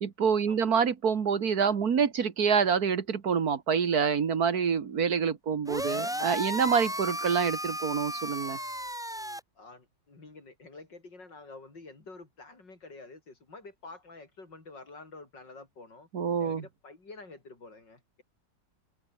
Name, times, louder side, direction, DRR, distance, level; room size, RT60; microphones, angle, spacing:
voice 1, 0.0-8.6 16.1-16.6, right 6 dB, 55° right, 1.9 m, -27 dB
sound 1, 5.7-9.4, equal, ahead, 2.0 m, -34 dB
voice 2, 9.6-16.1 16.4-18.2, left 3 dB, 75° left, 5.7 m, -49 dB
omnidirectional pair, 1.9 m